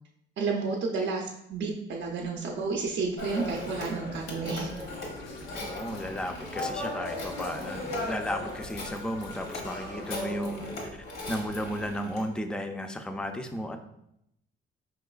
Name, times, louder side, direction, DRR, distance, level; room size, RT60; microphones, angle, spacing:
voice 1, 0.4-4.7, right 4 dB, 60° right, 0 dB, 0.5 m, -31 dB
Telephone, 3.2-12.3, left 2 dB, 85° left, 1.0 m, -37 dB
sound 1, 5.2-9.5, left 3 dB, 65° left, 0.6 m, -51 dB
voice 2, 5.6-10.7 11.3-13.8, equal, 5° left, 6 dB, 0.3 m, -34 dB
4.7 x 3.0 x 2.3 m, 0.79 s
cardioid pair, 90°, 20 cm